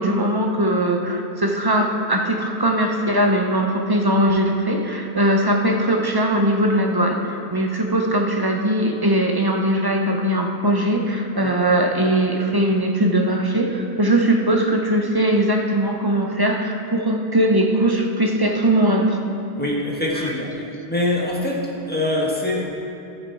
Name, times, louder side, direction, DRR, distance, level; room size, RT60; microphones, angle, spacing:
voice 1, 0.0-19.2 20.2-20.3, right 1 dB, 25° right, 2 dB, 0.6 m, -20 dB
voice 2, 19.6-20.5 20.9-22.8, left 1 dB, 10° left, -4 dB, 1.4 m, -24 dB
12.5 x 6.5 x 4.7 m, 2.7 s
omnidirectional pair, 1.1 m